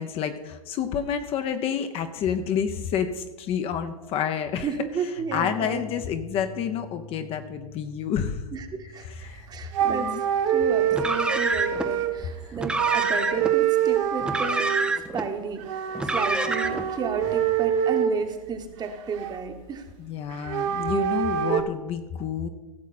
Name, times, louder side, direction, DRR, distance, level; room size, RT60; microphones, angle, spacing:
voice 1, 0.0-4.7 5.3-8.4 9.0-9.5 9.8-10.2 12.5-12.6 20.0-22.5, left 8 dB, 30° left, 8 dB, 0.8 m, -29 dB
voice 2, 4.6-5.8 8.5-9.1 9.5-10.2 10.5-14.8 15.1-15.7 16.0-19.8, right 5 dB, 20° right, 6 dB, 1.2 m, -32 dB
sound 1, 5.2-12.2, left 1 dB, 85° left, 3.6 m, -46 dB
sound 2, 9.2-9.4 9.7-12.3 12.7-14.9 15.6-18.2 18.6-19.6 20.3-21.6, right 9 dB, 50° right, 1.1 m, -25 dB
Car, 10.9-11.9 12.6-13.5 14.2-15.3 15.9-16.9, right 2 dB, 5° right, 0.6 m, -27 dB
16.0 x 7.2 x 4.2 m, 1.1 s
hypercardioid pair, 115°, 19 cm